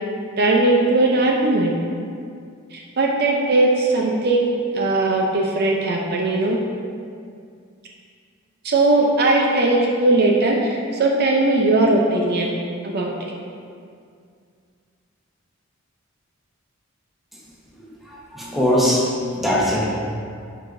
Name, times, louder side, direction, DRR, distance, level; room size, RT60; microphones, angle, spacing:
voice 1, 0.4-1.7 2.7-4.5 4.7-6.6 8.6-12.5 12.8-13.1, right 2 dB, 50° right, -1 dB, 0.6 m, -19 dB
voice 2, 17.8-19.8, equal, ahead, -6 dB, 1.2 m, -21 dB
11.0 x 4.7 x 2.6 m, 2.3 s
head